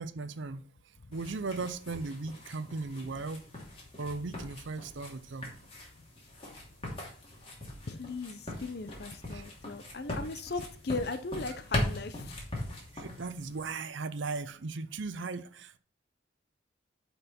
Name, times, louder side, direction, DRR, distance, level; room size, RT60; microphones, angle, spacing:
voice 1, 0.0-3.5 4.0-5.5 9.3-9.5 12.9-15.8, right 3 dB, 75° right, 0.6 m, -37 dB
sound 1, 1.1-13.7, left 1 dB, 30° left, 2.9 m, -40 dB
voice 2, 7.9-12.3, left 3 dB, 55° left, 0.7 m, -37 dB
9.8 x 5.4 x 4.3 m
head